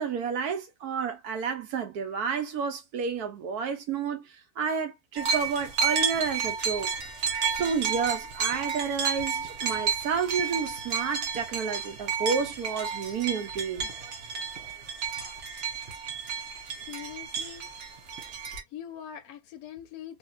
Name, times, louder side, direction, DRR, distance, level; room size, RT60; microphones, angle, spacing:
voice 1, 0.0-4.3 4.6-6.9 7.5-13.9, right 6 dB, 75° right, 1.4 m, -30 dB
sound 1, 5.2-18.6, right 6 dB, 55° right, 1.1 m, -32 dB
voice 2, 16.8-17.7 18.7-20.2, left 9 dB, 70° left, 1.0 m, -42 dB
3.3 x 2.5 x 2.4 m
omnidirectional pair, 1.7 m